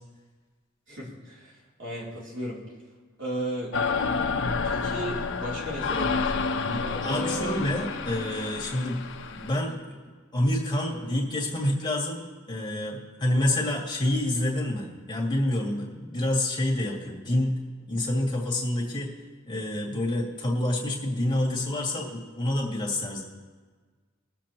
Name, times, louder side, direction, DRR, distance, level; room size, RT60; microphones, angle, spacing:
voice 1, 0.9-2.6 3.2-3.7 4.6-7.6, right 1 dB, 65° right, -5 dB, 3.2 m, -35 dB
sound 1, 3.7-9.5, left 4 dB, 60° left, 0.7 m, -29 dB
voice 2, 6.7-9.0 9.3-10.0 10.3-12.2 12.5-17.5 17.9-19.1 19.5-23.2, left 1 dB, 20° left, -3 dB, 2.1 m, -28 dB
22.0 x 7.6 x 2.9 m, 1.5 s
head